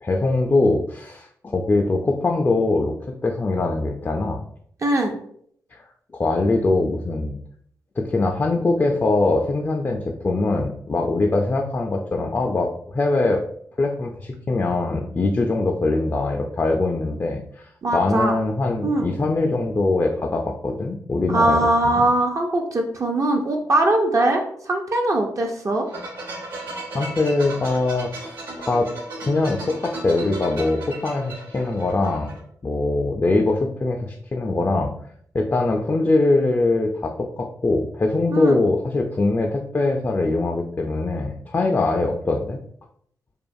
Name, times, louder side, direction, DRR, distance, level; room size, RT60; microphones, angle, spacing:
voice 1, 0.0-3.0 3.2-4.4 5.7-5.8 6.1-7.4 8.0-13.4 13.8-21.6 21.8-22.0 26.9-28.9 29.2-32.3 32.6-34.9 35.3-42.6, left 2 dB, 30° left, 2 dB, 0.3 m, -22 dB
voice 2, 4.8-5.1 17.8-18.4 18.8-19.1 21.3-24.4 24.7-25.8 38.3-38.6, right 1 dB, 45° right, 1 dB, 0.4 m, -21 dB
sound 1, 25.9-32.4, right 2 dB, 75° right, 1.2 m, -35 dB
2.4 x 2.3 x 2.5 m, 0.64 s
supercardioid pair, 40°, 7 cm